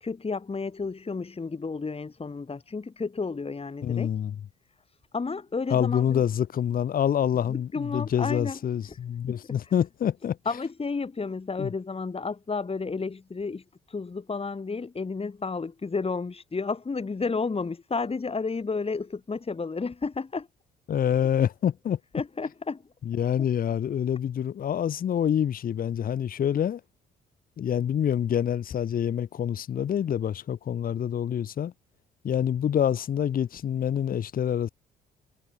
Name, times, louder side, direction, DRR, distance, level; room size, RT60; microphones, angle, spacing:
voice 1, 0.0-4.1 5.1-6.2 7.5-8.6 8.9-9.0 9.3-9.4 10.4-20.5 22.1-22.8, left 4 dB, 30° left, 2.9 m, -32 dB
voice 2, 3.8-4.4 5.7-10.4 11.6-11.7 20.9-22.0 23.0-26.8 27.6-31.7 32.2-34.7, left 9 dB, 45° left, 0.8 m, -26 dB
hypercardioid pair, 55°, 21 cm